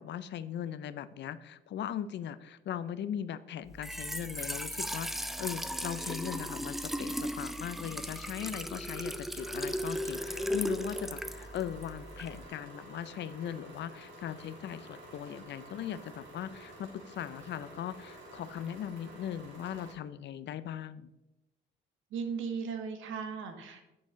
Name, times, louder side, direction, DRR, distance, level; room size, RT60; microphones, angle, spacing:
voice 1, 0.0-5.1 5.4-21.1, left 9 dB, 60° left, 14 dB, 0.5 m, -39 dB
Trickle dribble / Fill (with liquid), 3.7-12.5, equal, ahead, 0.4 m, -37 dB
sound 1, 9.3-19.9, right 1 dB, 65° right, 2.7 m, -50 dB
voice 2, 22.1-24.0, right 6 dB, 80° right, 6 dB, 1.1 m, -37 dB
7.7 x 6.3 x 3.7 m, 0.96 s
cardioid pair, 90°, 20 cm